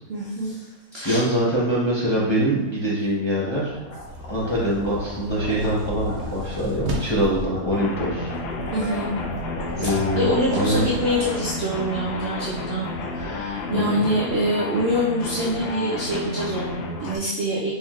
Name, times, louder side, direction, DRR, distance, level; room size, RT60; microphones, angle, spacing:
voice 1, 0.1-0.7 0.9-1.2 8.7-9.1 9.8-17.7, equal, 75° right, -4 dB, 0.5 m, -25 dB
voice 2, 1.0-3.7 4.3-8.3 9.8-10.8 13.7-14.0, equal, 25° left, -8 dB, 0.6 m, -23 dB
sound 1, 3.1-14.3, left 1 dB, 40° left, 1.0 m, -36 dB
sound 2, 4.1-7.4, right 1 dB, 55° right, 0.9 m, -34 dB
sound 3, 7.7-17.2, left 3 dB, 90° left, 1.2 m, -31 dB
4.5 x 3.5 x 2.3 m, 1.0 s
omnidirectional pair, 1.7 m